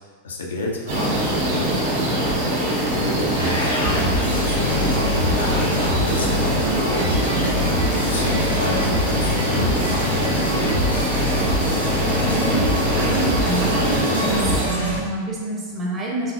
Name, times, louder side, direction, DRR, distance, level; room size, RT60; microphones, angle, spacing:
voice 1, 0.2-1.2 1.5-2.4 2.6-3.3 3.8-7.6 8.1-10.9, left 2 dB, 65° left, -1 dB, 0.5 m, -30 dB
sound 1, 0.9-14.6, right 1 dB, 55° right, 1.0 m, -23 dB
sound 2, 3.3-15.0, left 1 dB, 85° left, 0.9 m, -24 dB
Telephone, 4.2-4.3 6.4-6.5 6.9-7.4 7.8-7.9 8.3-8.4 8.7-8.9 9.4-9.5 9.8-9.9 10.2-10.8 11.8-11.9 13.3-13.4, right 4 dB, 80° right, 0.5 m, -38 dB
voice 2, 12.0-16.3, right 2 dB, 25° right, -3 dB, 1.0 m, -27 dB
4.3 x 3.3 x 2.5 m, 1.5 s
figure-of-eight pair, 90°, 0 cm